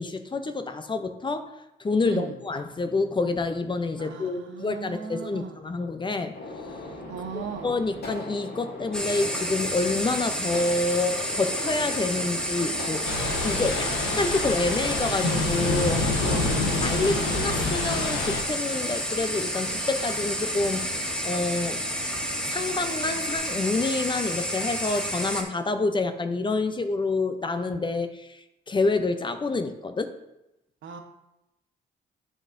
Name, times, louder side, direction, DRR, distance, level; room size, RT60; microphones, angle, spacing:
voice 1, 0.0-6.4 7.3-16.4 16.8-20.9 21.2-21.8 22.5-30.1, left 3 dB, 25° left, 9 dB, 0.6 m, -28 dB
voice 2, 4.0-5.6 7.1-7.8 16.2-16.7 30.8-31.0, right 6 dB, 75° right, 5 dB, 1.0 m, -37 dB
Gunshot gunfire, 6.3-23.4, left 2 dB, 55° left, 2.4 m, -41 dB
sound 1, 8.9-25.4, equal, 5° left, 1.1 m, -30 dB
Thunder / Rain, 13.0-18.4, left 2 dB, 90° left, 1.1 m, -27 dB
12.0 x 4.1 x 2.6 m, 0.90 s
cardioid pair, 90°, 20 cm